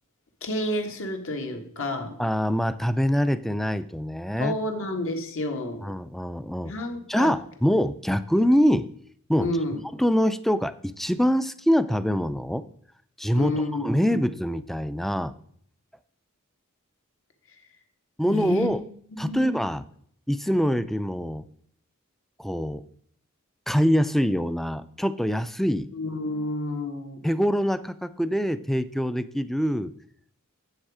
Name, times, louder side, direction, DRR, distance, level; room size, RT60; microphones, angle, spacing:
voice 1, 0.4-2.2 4.4-5.8 6.6-7.3 9.4-9.8 13.3-14.2 18.2-18.7 19.2-19.6 25.9-27.3, left 1 dB, 65° left, 3 dB, 1.7 m, -30 dB
voice 2, 2.2-4.6 5.8-6.7 7.1-8.9 9.3-9.5 9.9-12.6 13.2-15.3 18.2-18.8 19.2-19.8 20.3-21.4 22.4-22.8 23.7-25.9 27.2-29.9, equal, ahead, 14 dB, 0.4 m, -24 dB
9.0 x 8.0 x 4.9 m, 0.63 s
head